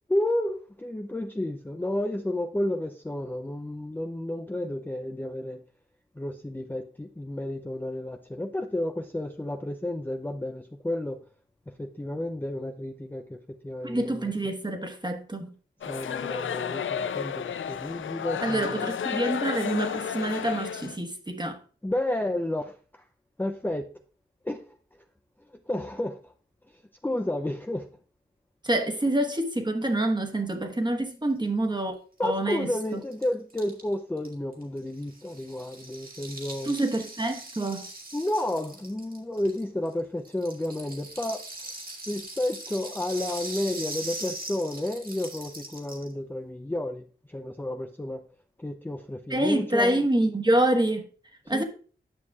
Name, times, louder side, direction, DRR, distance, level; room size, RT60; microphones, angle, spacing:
voice 1, 0.1-5.6 6.2-11.2 11.8-13.4 13.6-14.3 15.9-18.8 21.8-23.0 23.4-23.9 24.4-24.6 25.5-26.3 27.0-27.9 32.2-36.7 38.1-41.4 42.1-48.2 48.6-50.0 51.5-51.6, left 1 dB, 10° left, 0.5 m, -31 dB
voice 2, 13.8-15.5 18.4-21.6 28.6-32.0 32.2-33.0 36.6-37.9 49.3-51.1 51.5-51.6, right 1 dB, 20° right, 1.2 m, -27 dB
sound 1, 15.8-21.0, left 8 dB, 75° left, 0.4 m, -32 dB
Rattle (instrument), 32.2-32.3 32.5-32.6 32.8-39.9 40.2-46.1, right 2 dB, 50° right, 1.7 m, -41 dB
9.8 x 6.0 x 2.3 m
cardioid pair, 50°, 20 cm